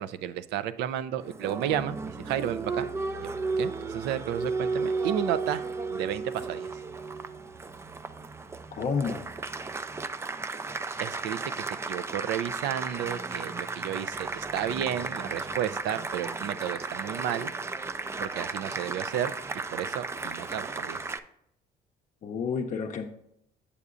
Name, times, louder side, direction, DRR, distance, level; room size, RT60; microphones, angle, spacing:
voice 1, 0.0-2.9 3.2-6.7 11.0-17.5 18.2-19.3 19.7-21.0, right 10 dB, 85° right, 13 dB, 0.4 m, -32 dB
Applause, 1.2-21.2, right 4 dB, 15° right, 0.3 m, -34 dB
voice 2, 8.8-9.2 22.2-23.0, left 5 dB, 45° left, 2 dB, 0.6 m, -29 dB
8.4 x 6.7 x 2.5 m, 0.75 s
cardioid pair, 110°, 17 cm